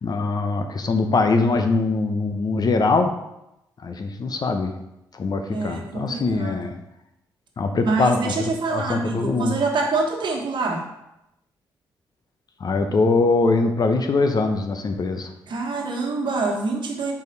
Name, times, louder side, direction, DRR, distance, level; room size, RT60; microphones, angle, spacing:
voice 1, 0.0-3.1 3.8-4.7 5.1-6.7 7.6-9.6 12.6-15.3, left 3 dB, 50° left, 6 dB, 0.7 m, -22 dB
voice 2, 5.5-6.7 7.8-10.9 15.5-17.1, right 3 dB, 60° right, 1 dB, 1.3 m, -26 dB
5.1 x 4.8 x 3.9 m, 0.86 s
supercardioid pair, 60°, 9 cm